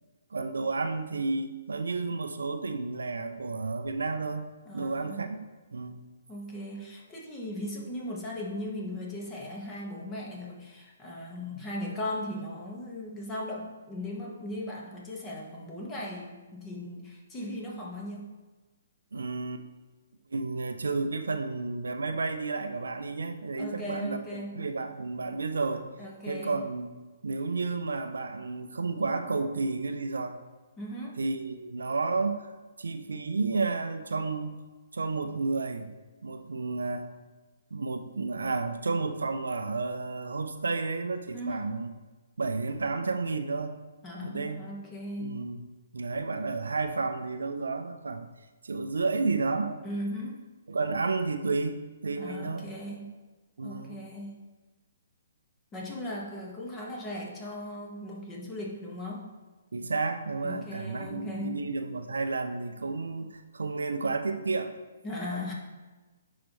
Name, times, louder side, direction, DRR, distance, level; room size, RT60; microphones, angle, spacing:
voice 1, 0.3-4.5 4.7-5.4 5.7-6.0 19.1-19.6 20.3-25.8 26.3-26.9 27.2-30.4 31.2-32.5 32.8-34.6 34.9-35.9 36.2-37.1 37.7-41.9 42.4-43.8 44.2-44.6 45.2-45.6 45.9-48.3 48.6-49.8 50.7-52.7 53.6-54.0 59.7-64.7, right 3 dB, 80° right, 8 dB, 0.5 m, -31 dB
voice 2, 4.7-5.2 6.3-18.2 23.6-24.6 26.0-26.6 30.8-31.2 41.3-41.7 44.0-45.4 49.8-50.4 52.2-53.1 53.6-54.3 55.7-59.3 60.4-61.6 65.0-65.5, left 1 dB, 20° left, -2 dB, 1.5 m, -38 dB
10.5 x 4.0 x 3.1 m, 1.2 s
figure-of-eight pair, 135°, 0 cm